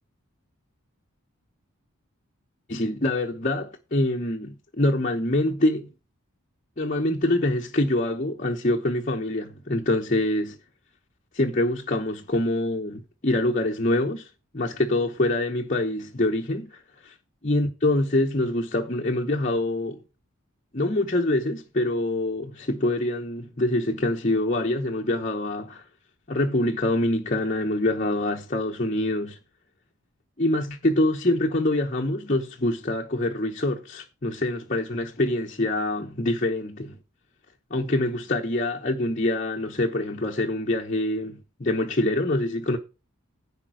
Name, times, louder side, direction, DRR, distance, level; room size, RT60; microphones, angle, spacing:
voice 1, 2.7-5.9 6.8-10.6 11.3-14.3 14.5-17.1 17.4-20.0 20.7-25.8 26.3-29.4 30.4-37.0 37.7-42.8, left 1 dB, 35° left, 0.9 m, -25 dB
10.5 x 5.2 x 6.3 m
head